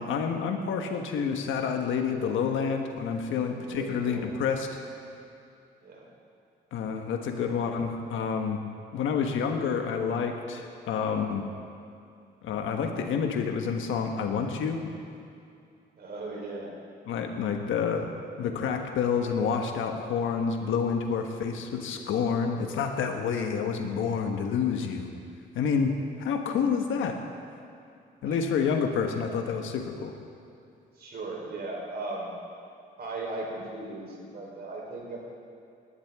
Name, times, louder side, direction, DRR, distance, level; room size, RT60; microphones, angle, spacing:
voice 1, 0.0-4.8 6.7-8.6 8.9-11.4 12.4-14.9 17.1-18.1 18.4-25.1 25.5-27.2 28.2-30.1, left 6 dB, 80° left, 4 dB, 1.3 m, -28 dB
voice 2, 3.5-4.3 5.8-6.1 16.0-16.7 28.3-28.4 31.0-32.4 33.0-35.2, right 2 dB, 55° right, -2 dB, 4.0 m, -37 dB
19.5 x 11.5 x 3.6 m, 2.6 s
cardioid pair, 90°, 20 cm